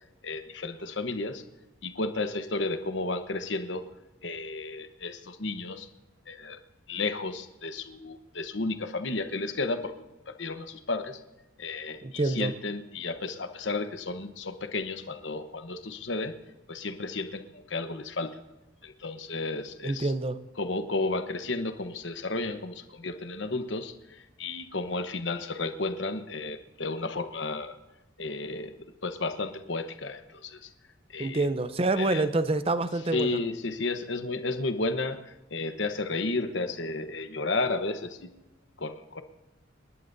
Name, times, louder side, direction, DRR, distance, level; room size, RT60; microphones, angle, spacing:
voice 1, 0.2-1.4 1.8-3.9 4.2-5.9 6.3-6.6 6.9-9.9 10.3-11.2 11.6-16.3 16.7-18.4 18.8-20.1 20.6-27.8 28.2-28.7 29.0-30.6 31.1-31.4 32.0-32.3 33.1-38.3 38.8-39.2, left 3 dB, 65° left, 8 dB, 1.1 m, -32 dB
voice 2, 12.0-12.5 19.8-20.4 31.2-33.4, right 2 dB, 30° right, 12 dB, 0.7 m, -27 dB
29.5 x 11.5 x 2.7 m, 1.0 s
head